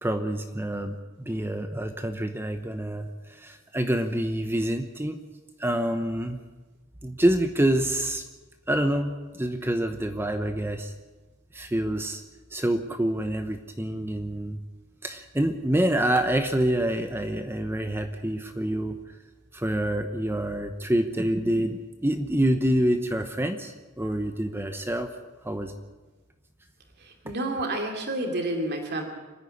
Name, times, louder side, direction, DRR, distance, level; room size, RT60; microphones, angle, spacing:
voice 1, 0.0-5.2 5.6-6.4 7.0-8.2 8.7-10.9 11.5-12.2 12.5-14.6 15.0-19.0 19.5-25.1 25.4-25.7, right 1 dB, 10° right, 7 dB, 0.9 m, -27 dB
voice 2, 27.2-29.0, right 1 dB, 50° right, 3 dB, 2.9 m, -29 dB
26.0 x 10.0 x 9.9 m, 1.2 s
head